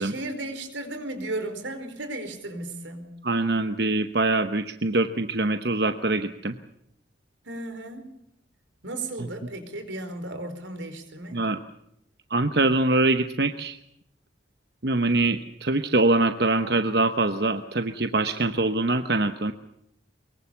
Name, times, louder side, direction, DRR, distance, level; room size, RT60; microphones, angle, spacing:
voice 1, 0.0-3.1 7.4-8.1 8.8-11.4, right 2 dB, 85° right, 9 dB, 4.6 m, -35 dB
voice 2, 3.2-6.5 9.2-9.3 11.3-11.6 12.3-13.8 14.8-19.5, right 2 dB, 60° right, 9 dB, 1.0 m, -24 dB
23.5 x 23.0 x 7.1 m, 0.78 s
head